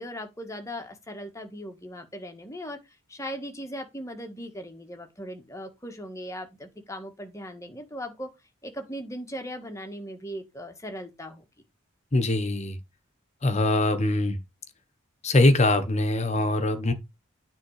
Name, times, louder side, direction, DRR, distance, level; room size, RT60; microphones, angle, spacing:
voice 1, 0.0-2.8 3.1-8.3 8.6-11.4, equal, 15° left, 1.7 m, -38 dB
voice 2, 12.1-12.8 13.4-14.4 15.2-16.9, left 2 dB, 35° left, 1.3 m, -22 dB
9.6 x 3.7 x 4.9 m
head